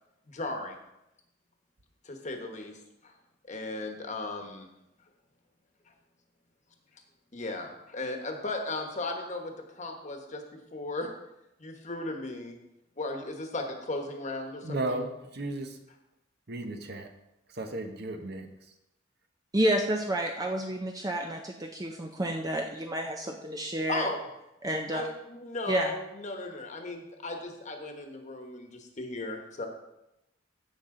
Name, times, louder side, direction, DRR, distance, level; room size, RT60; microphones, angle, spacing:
voice 1, 0.3-0.8 2.0-2.8 3.0-3.1 3.5-4.7 7.3-10.4 10.7-11.1 11.6-12.6 13.0-15.0 23.9-24.2 24.9-29.7, left 2 dB, 40° left, 4 dB, 1.3 m, -36 dB
voice 2, 14.6-15.8 16.5-17.1 17.5-18.5, right 2 dB, 55° right, 6 dB, 1.0 m, -34 dB
voice 3, 19.5-24.1 24.6-25.0 25.7-25.9, right 1 dB, 20° right, 2 dB, 0.6 m, -30 dB
15.5 x 5.8 x 3.8 m, 0.90 s
head